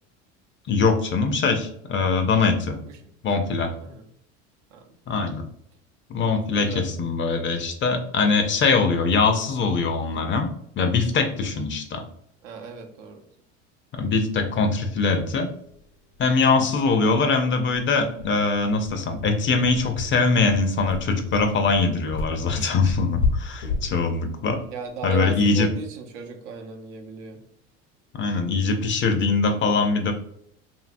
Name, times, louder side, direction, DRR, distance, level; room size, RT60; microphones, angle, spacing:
voice 1, 0.7-2.8 3.2-3.7 5.1-5.5 6.1-10.5 10.8-12.0 13.9-15.5 16.2-24.6 25.0-25.7 28.1-30.1, left 4 dB, 35° left, 6 dB, 0.5 m, -22 dB
voice 2, 6.5-6.9 12.4-13.2 24.7-27.4, right 5 dB, 75° right, 4 dB, 0.7 m, -36 dB
sound 1, 15.7-15.8 16.1-16.3 16.7-16.8 17.2-25.6, left 4 dB, 70° left, 0.8 m, -31 dB
2.7 x 2.7 x 2.5 m, 0.69 s
hypercardioid pair, 90°, 35 cm